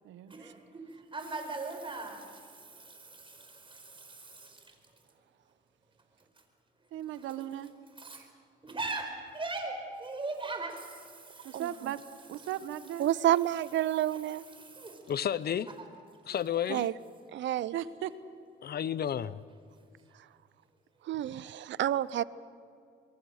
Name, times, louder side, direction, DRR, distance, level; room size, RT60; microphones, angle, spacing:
voice 1, 0.3-4.8 7.1-7.3 7.9-8.3 8.6-11.6 12.4-12.5 13.9-15.1 20.1-20.2, right 3 dB, 25° right, 4.7 m, -40 dB
voice 2, 6.9-7.7 11.4-12.0 12.3-13.1 17.7-18.1, right 11 dB, 90° right, 1.1 m, -37 dB
voice 3, 13.0-14.4 16.7-16.9 17.3-17.7 21.1-22.2, right 12 dB, 65° right, 0.6 m, -29 dB
voice 4, 15.1-15.7 16.3-16.9 18.6-19.4, left 9 dB, 50° left, 0.8 m, -31 dB
26.0 x 22.0 x 6.5 m
cardioid pair, 90°, 20 cm